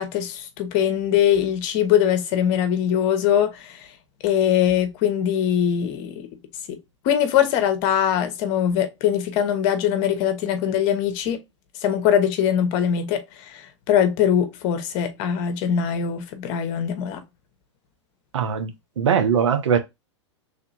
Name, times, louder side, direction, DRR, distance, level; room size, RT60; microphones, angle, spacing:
voice 1, 0.0-3.9 4.2-6.3 6.7-6.8 7.0-11.4 11.8-17.2, left 9 dB, 50° left, 1.0 m, -22 dB
voice 2, 18.3-19.8, right 7 dB, 80° right, 0.9 m, -21 dB
3.4 x 2.8 x 4.2 m
hypercardioid pair, 110°, 15 cm